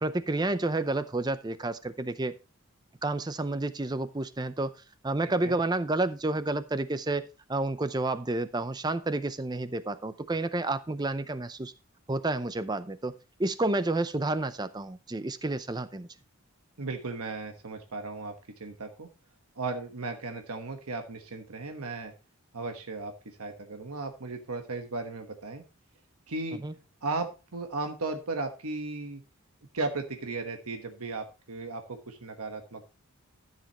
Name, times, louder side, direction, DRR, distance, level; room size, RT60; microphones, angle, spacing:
voice 1, 0.0-2.3 3.0-4.7 5.0-11.7 12.1-16.1 26.6-26.7, right 2 dB, 20° right, 13 dB, 0.5 m, -30 dB
voice 2, 16.8-18.3 18.6-19.1 19.6-22.1 22.5-25.6 26.3-26.6 27.0-29.2 29.7-32.8, right 3 dB, 85° right, 5 dB, 1.2 m, -36 dB
13.5 x 7.4 x 2.9 m, 0.31 s
head